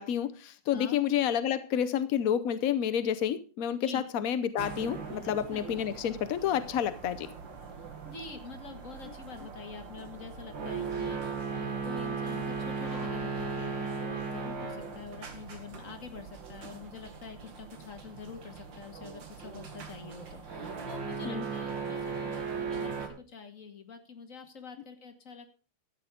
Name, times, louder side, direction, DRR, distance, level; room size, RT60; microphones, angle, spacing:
voice 1, 0.0-7.3 21.2-21.5, left 9 dB, 65° left, 12 dB, 0.8 m, -29 dB
sound 1, 4.6-23.1, right 5 dB, 65° right, 2.5 m, -38 dB
voice 2, 5.2-5.6 7.8-25.5, left 5 dB, 40° left, 6 dB, 2.0 m, -46 dB
13.0 x 9.2 x 5.0 m, 0.35 s
omnidirectional pair, 2.3 m